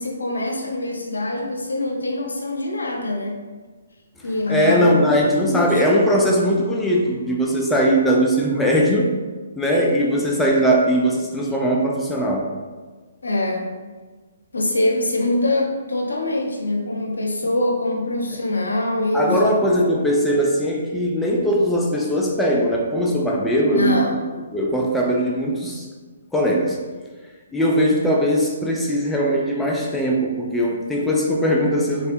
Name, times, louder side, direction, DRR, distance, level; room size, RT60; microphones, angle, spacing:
voice 1, 0.0-3.4 4.2-5.8 13.2-13.7 14.5-19.6 23.7-24.1, left 2 dB, 85° left, 1 dB, 0.7 m, -24 dB
voice 2, 4.5-9.1 9.6-12.5 19.1-24.1 24.5-25.9 26.3-26.8 27.5-32.1, equal, 5° left, -2 dB, 0.5 m, -20 dB
4.3 x 3.2 x 2.6 m, 1.4 s
hypercardioid pair, 140°, 0 cm